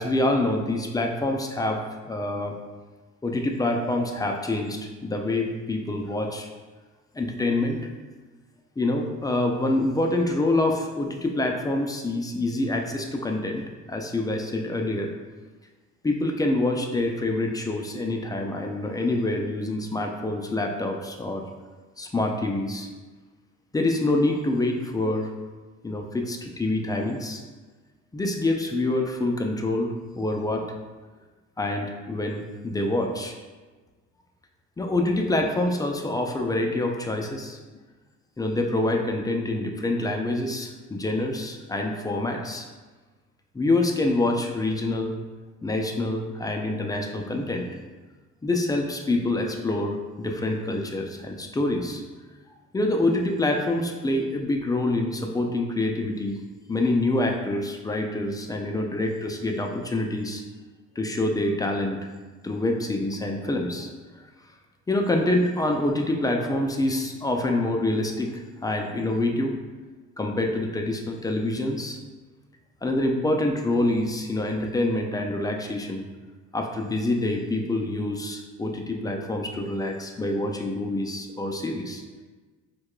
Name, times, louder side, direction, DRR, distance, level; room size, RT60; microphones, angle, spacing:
voice 1, 0.0-2.6 3.2-6.5 7.1-7.9 8.8-15.1 16.0-21.5 22.0-22.9 23.7-25.3 25.8-27.4 28.1-30.7 31.6-33.3 34.8-37.6 38.4-42.7 43.5-45.1 45.6-47.7 48.4-52.0 52.7-56.4 56.7-60.4 61.0-62.1 62.4-63.9 64.9-68.3 68.6-69.6 70.2-72.0 72.8-76.1 76.5-82.0, left 2 dB, 15° left, 2 dB, 0.3 m, -26 dB
4.6 x 2.2 x 2.3 m, 1.3 s
cardioid pair, 90°, 30 cm